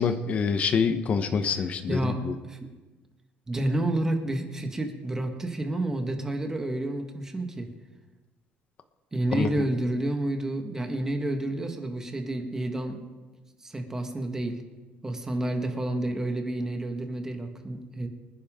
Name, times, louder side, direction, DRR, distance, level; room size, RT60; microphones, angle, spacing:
voice 1, 0.0-2.3 9.3-9.5, left 6 dB, 35° left, 9 dB, 1.1 m, -26 dB
voice 2, 1.6-2.2 2.4-2.7 3.5-7.7 9.1-13.1 13.6-14.6 15.0-18.1, right 1 dB, 15° right, 4 dB, 1.6 m, -30 dB
25.5 x 10.0 x 3.8 m, 1.2 s
cardioid pair, 150°, 4 cm